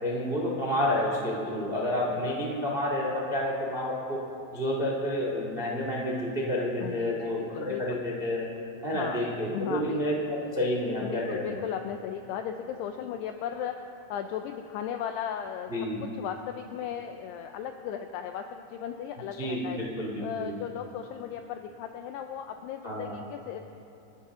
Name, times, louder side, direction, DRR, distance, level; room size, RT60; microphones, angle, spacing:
voice 1, 0.0-4.2 4.5-8.4 8.8-11.6 15.7-16.0 19.4-20.6 22.8-23.1, left 1 dB, 70° right, -2 dB, 0.5 m, -29 dB
voice 2, 6.8-8.0 8.9-9.2 9.5-10.2 11.0-13.7 14.1-15.7 16.0-19.8 20.2-23.6, left 9 dB, 85° left, 6 dB, 2.3 m, -36 dB
28.0 x 13.0 x 3.7 m, 2.9 s
omnidirectional pair, 5.5 m